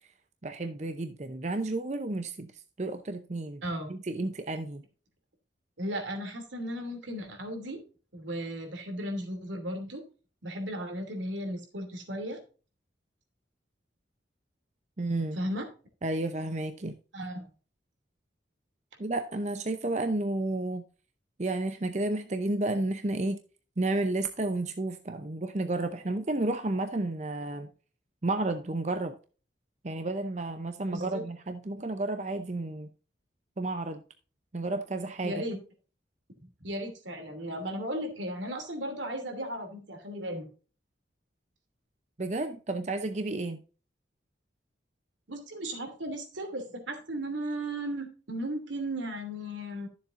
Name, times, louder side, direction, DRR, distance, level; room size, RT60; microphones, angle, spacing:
voice 1, 0.4-3.6 3.9-4.8 15.0-15.4 16.0-16.9 19.0-20.8 21.4-23.4 23.8-27.7 28.2-29.2 29.8-32.9 33.6-34.0 34.5-35.4 42.2-43.6, right 2 dB, 40° right, 0.7 m, -31 dB
voice 2, 5.8-7.8 8.1-10.0 10.4-12.4 15.3-15.7 17.1-17.4 30.9-31.2 35.2-35.6 36.4-40.5 45.3-49.9, right 1 dB, 85° right, 2.8 m, -35 dB
13.0 x 7.2 x 2.6 m
head